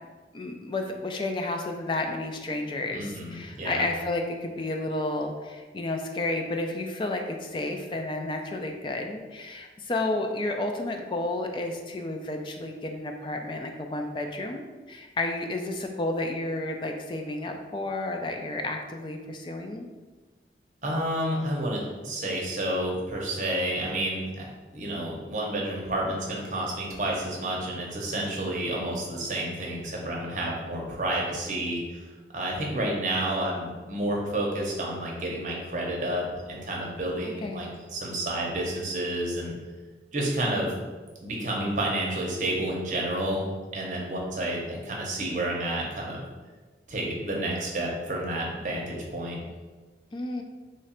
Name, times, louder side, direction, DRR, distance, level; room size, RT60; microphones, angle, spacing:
voice 1, 0.3-19.9 37.2-37.7 50.1-50.4, left 2 dB, 25° left, 3 dB, 0.3 m, -31 dB
voice 2, 2.9-3.8 20.8-31.8 32.3-39.5 40.1-40.7 41.2-43.5 43.7-46.2 46.9-49.4, right 1 dB, 45° right, -2 dB, 0.8 m, -30 dB
3.2 x 2.4 x 4.2 m, 1.3 s
head